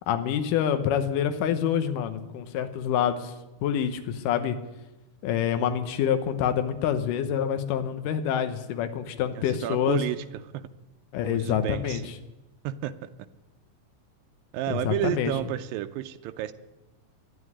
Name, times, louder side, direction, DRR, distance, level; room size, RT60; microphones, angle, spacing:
voice 1, 0.1-3.3 3.6-4.6 5.2-10.0 11.1-12.0 14.7-15.3, left 9 dB, 70° left, 8 dB, 2.5 m, -26 dB
voice 2, 9.3-10.2 10.5-10.6 11.2-12.0 12.6-12.9 14.5-16.5, right 13 dB, 85° right, 9 dB, 2.4 m, -31 dB
12.5 x 10.0 x 9.8 m, 1.0 s
omnidirectional pair, 4.0 m